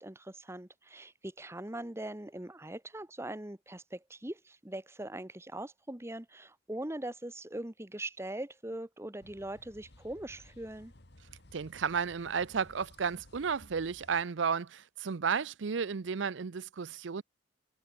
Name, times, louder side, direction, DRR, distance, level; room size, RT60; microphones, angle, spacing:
voice 1, 0.0-10.9, right 1 dB, 15° right, 1.0 m, -41 dB
sound 1, 9.2-14.2, left 1 dB, 55° left, 2.3 m, -57 dB
voice 2, 11.5-17.2, right 6 dB, 70° right, 0.6 m, -33 dB
head